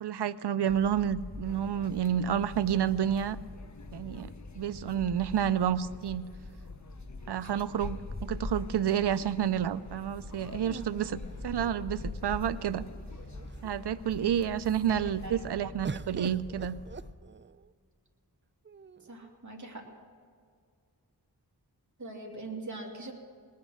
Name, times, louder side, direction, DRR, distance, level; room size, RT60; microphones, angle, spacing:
voice 1, 0.0-3.4 3.9-6.2 7.3-12.9 13.6-16.7, right 9 dB, 80° right, 15 dB, 0.5 m, -30 dB
sound 1, 0.7-17.1, left 2 dB, 25° left, 1.4 m, -44 dB
sound 2, 1.4-15.5, left 4 dB, 45° left, 0.9 m, -52 dB
sound 3, 7.5-8.6 10.6-12.1 12.9-13.0 13.3-13.9 15.8-17.7 18.6-19.3, right 5 dB, 30° right, 0.4 m, -44 dB
voice 2, 14.9-15.4 19.0-19.8 22.0-23.1, right 2 dB, 45° right, 0 dB, 2.7 m, -42 dB
19.5 x 9.6 x 6.4 m, 2.1 s
wide cardioid pair, 40°, 40 cm